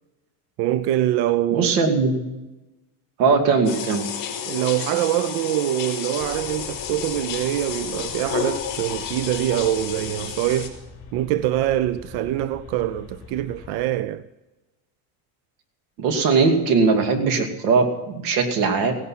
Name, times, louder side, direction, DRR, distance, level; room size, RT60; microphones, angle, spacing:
voice 1, 0.6-1.7 4.5-10.8 11.1-14.2, right 13 dB, 55° right, 0.6 m, -24 dB
voice 2, 1.5-2.2 3.2-4.1 16.0-19.0, right 4 dB, 85° right, 2.8 m, -20 dB
sound 1, 3.6-10.7, left 8 dB, 45° left, 4.8 m, -31 dB
sound 2, 6.2-13.9, left 5 dB, 25° left, 4.2 m, -43 dB
17.5 x 11.5 x 5.9 m
cardioid pair, 145°, 47 cm